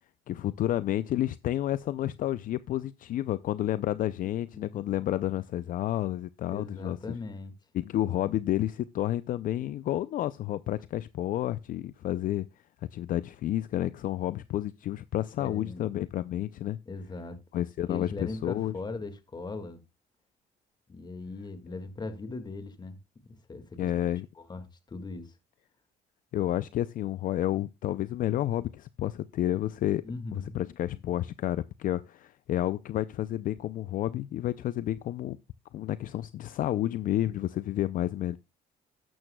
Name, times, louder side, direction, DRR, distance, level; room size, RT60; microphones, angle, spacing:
voice 1, 0.3-7.0 7.7-12.5 12.9-16.8 17.5-18.7 23.8-24.3 26.3-30.0 30.3-35.4 35.7-38.4, left 13 dB, 55° left, 0.4 m, -30 dB
voice 2, 4.2-4.8 6.5-7.5 15.4-15.9 16.9-17.4 17.9-19.8 20.9-23.0 23.3-23.9 24.4-25.3 30.0-30.6, left 3 dB, 25° left, 1.8 m, -39 dB
12.5 x 11.0 x 2.2 m
cardioid pair, 110°, 17 cm